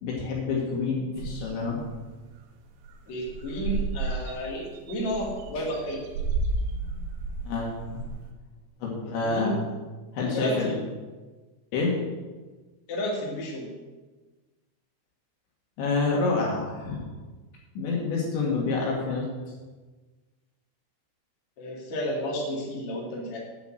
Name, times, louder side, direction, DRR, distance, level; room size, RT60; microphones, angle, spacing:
voice 1, 0.0-1.8 7.5-8.0 8.8-9.5 10.1-10.7 11.7-12.0 15.8-17.1 17.8-19.3, left 4 dB, 65° left, -2 dB, 4.0 m, -27 dB
sound 1, 1.2-1.9 2.4-2.5 2.7-3.0 3.3-8.3, right 3 dB, 75° right, 3.4 m, -32 dB
voice 2, 3.1-6.0 9.2-9.5 10.3-10.8 12.9-13.7 21.6-23.4, equal, 40° left, -4 dB, 3.2 m, -32 dB
9.7 x 8.0 x 7.7 m, 1.3 s
omnidirectional pair, 5.9 m